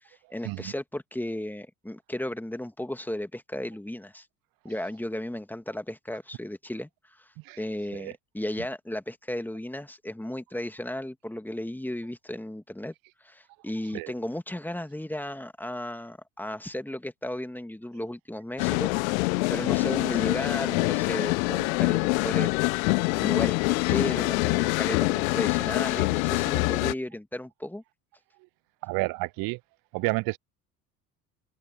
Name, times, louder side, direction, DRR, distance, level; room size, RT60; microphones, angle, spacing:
voice 1, 0.0-4.3 4.6-7.3 7.6-12.9 13.2-22.5 22.8-27.8, left 1 dB, 5° left, 2.2 m, -35 dB
sound 1, 18.6-26.9, left 26 dB, 60° left, 1.4 m, -25 dB
voice 2, 28.8-29.6 29.9-30.4, right 25 dB, 45° right, 0.9 m, -30 dB
open air
figure-of-eight pair, 65°, 47 cm